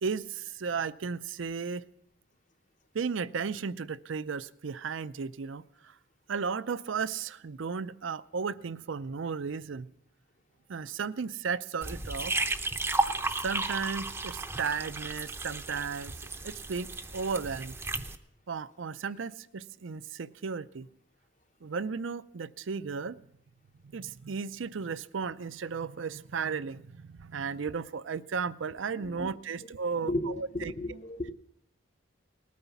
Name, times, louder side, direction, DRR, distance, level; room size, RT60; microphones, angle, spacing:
voice 1, 0.0-1.8 2.9-6.0 6.3-9.9 10.7-12.4 13.4-16.1 16.4-17.8 18.5-20.9 21.6-23.2 23.8-30.7, right 5 dB, 80° right, 16 dB, 0.5 m, -34 dB
sound 1, 11.8-18.2, right 2 dB, 10° right, 0.6 m, -33 dB
voice 2, 29.0-29.3 29.6-29.7 30.0-31.3, left 1 dB, 40° left, 8 dB, 0.9 m, -34 dB
19.0 x 9.4 x 7.1 m, 0.74 s
head